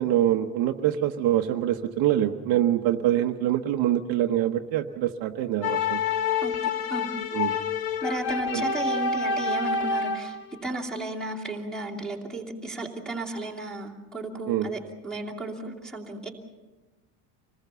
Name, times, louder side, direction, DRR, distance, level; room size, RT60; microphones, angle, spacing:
voice 1, 0.0-6.0 7.3-7.6 8.5-8.6 14.5-14.7, right 12 dB, 55° right, 5 dB, 1.1 m, -25 dB
sound 1, 5.6-10.4, left 4 dB, 55° left, 1.5 m, -27 dB
voice 2, 6.4-7.1 8.0-10.4 10.6-16.3, right 2 dB, ahead, 1 dB, 2.8 m, -34 dB
26.5 x 20.0 x 6.9 m, 1.2 s
cardioid pair, 175°, 44 cm